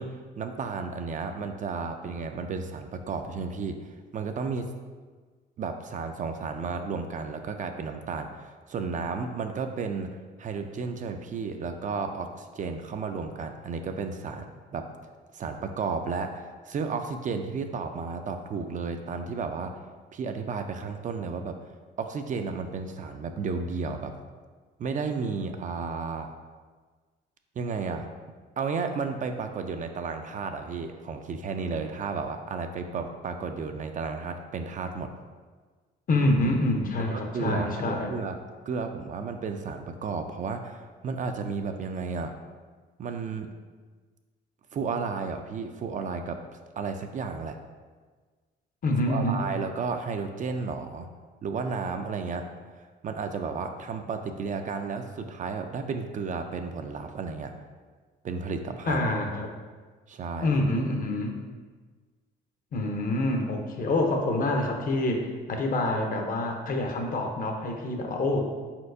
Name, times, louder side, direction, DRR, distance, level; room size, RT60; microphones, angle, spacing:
voice 1, 0.0-4.7 5.6-14.9 15.3-19.8 20.1-21.6 22.0-24.1 24.8-26.3 27.6-28.1 28.6-35.1 37.1-38.4 38.7-42.3 43.0-43.5 44.7-46.4 46.8-47.6 49.1-51.1 51.4-52.5 53.0-57.5 58.2-59.0 60.1-60.5, right 5 dB, 40° right, 6 dB, 0.4 m, -33 dB
voice 2, 36.1-38.1 48.8-49.4 58.9-59.5 60.4-61.3 62.7-68.4, left 2 dB, 45° left, 3 dB, 0.7 m, -26 dB
4.3 x 4.1 x 2.6 m, 1.4 s
supercardioid pair, 80°, 20 cm